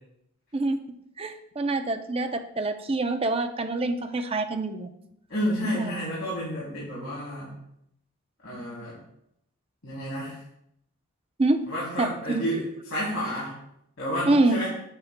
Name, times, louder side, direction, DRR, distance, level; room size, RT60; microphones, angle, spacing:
voice 1, 1.2-4.9 5.7-5.9 11.4-11.6 12.0-12.1 12.3-12.5 14.3-14.6, right 2 dB, 30° right, 7 dB, 0.6 m, -25 dB
voice 2, 5.3-7.6 8.4-9.0 9.8-10.4 11.7-13.6 14.0-14.7, equal, 70° left, -8 dB, 3.3 m, -30 dB
8.9 x 8.9 x 2.2 m, 0.77 s
head